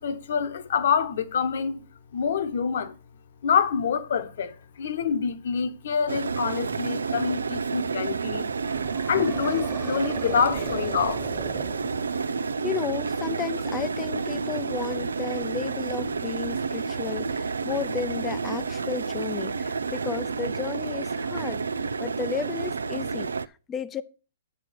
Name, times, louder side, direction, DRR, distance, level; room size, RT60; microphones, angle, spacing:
voice 1, 0.0-1.8 2.1-3.0 3.4-8.5 9.1-11.3, left 6 dB, 65° left, 1.2 m, -26 dB
sound 1, 6.1-23.5, right 5 dB, 90° right, 0.4 m, -30 dB
sound 2, 8.6-12.4, right 4 dB, 15° right, 1.5 m, -39 dB
voice 2, 12.6-21.6 22.0-24.0, left 7 dB, 20° left, 0.6 m, -33 dB
9.0 x 6.0 x 6.2 m
hypercardioid pair, 130°, 0 cm